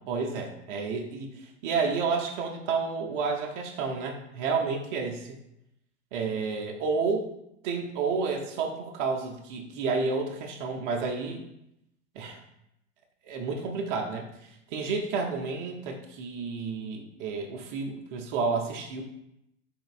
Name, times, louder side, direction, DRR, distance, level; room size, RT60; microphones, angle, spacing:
voice 1, 0.1-5.3 6.1-7.3 7.6-11.4 12.1-12.4 13.3-14.3 14.7-19.0, right 4 dB, 40° right, 1 dB, 0.7 m, -30 dB
3.9 x 3.7 x 2.5 m, 0.81 s
figure-of-eight pair, 90°, 35 cm